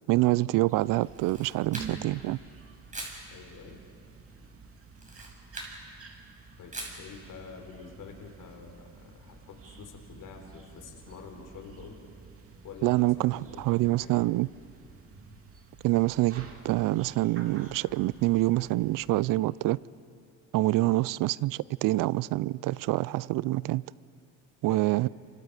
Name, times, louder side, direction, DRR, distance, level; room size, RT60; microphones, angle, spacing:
voice 1, 0.1-2.4 12.8-14.5 15.8-19.8 20.5-23.8 24.6-25.1, right 19 dB, 60° right, 0.5 m, -26 dB
sound 1, 0.7-19.4, right 4 dB, 35° right, 2.7 m, -50 dB
Camera, 1.0-2.2 2.9-3.2 4.9-5.8 6.7-7.1, right 2 dB, 20° right, 6.5 m, -41 dB
voice 2, 3.3-3.8 6.6-12.1 12.6-14.3 20.8-20.9 24.7-24.9, left 5 dB, 55° left, 4.4 m, -47 dB
29.0 x 25.5 x 5.0 m
supercardioid pair, 85°, 37 cm